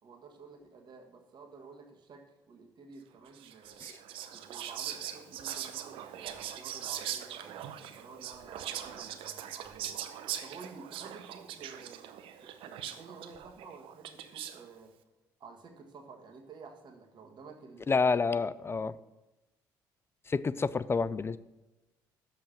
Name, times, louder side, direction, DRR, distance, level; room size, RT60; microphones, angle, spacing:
voice 1, 0.0-3.8 4.3-9.9 10.4-14.9 15.4-18.7, right 4 dB, 50° right, 3 dB, 1.6 m, -52 dB
Whispering, 3.3-14.7, right 10 dB, 70° right, 0.6 m, -41 dB
voice 2, 17.9-19.0 20.3-21.4, left 4 dB, 25° left, 17 dB, 0.4 m, -29 dB
6.9 x 5.7 x 5.7 m, 1.1 s
hypercardioid pair, 55°, 10 cm